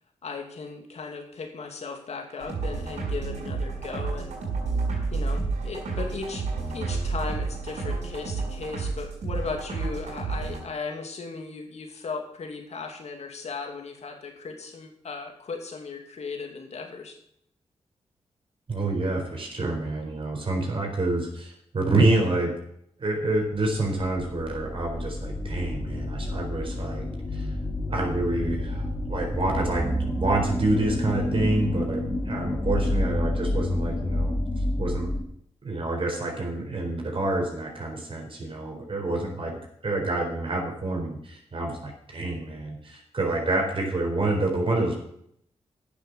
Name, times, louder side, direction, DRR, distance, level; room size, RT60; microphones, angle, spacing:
voice 1, 0.2-4.4 5.1-6.5 6.7-17.2, left 4 dB, 70° left, 3 dB, 2.6 m, -36 dB
sound 1, 2.4-10.6, right 4 dB, 85° right, 5.1 m, -30 dB
voice 2, 18.7-22.6 23.0-27.5 27.9-34.4 34.8-35.1 35.6-39.5 39.8-45.0, right 2 dB, 50° right, 1 dB, 4.3 m, -27 dB
sound 2, 23.9-35.2, left 1 dB, 20° left, 2.8 m, -29 dB
10.0 x 7.0 x 8.5 m, 0.69 s
cardioid pair, 60°, 12 cm